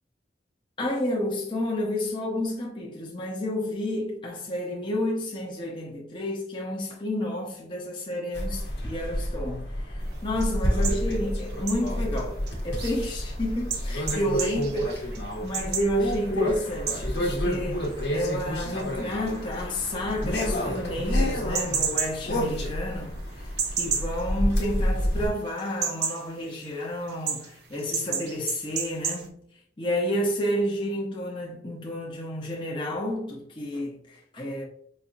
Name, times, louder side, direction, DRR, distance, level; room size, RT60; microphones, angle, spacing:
voice 1, 0.8-15.1 15.4-23.2 23.8-29.4 29.8-34.6, left 1 dB, 25° left, 0.8 m, -30 dB
sound 1, 8.3-25.3, equal, 75° left, 1.2 m, -29 dB
sound 2, 10.0-25.2 25.5-29.3, right 6 dB, 60° right, 0.7 m, -34 dB
5.3 x 2.7 x 2.5 m
head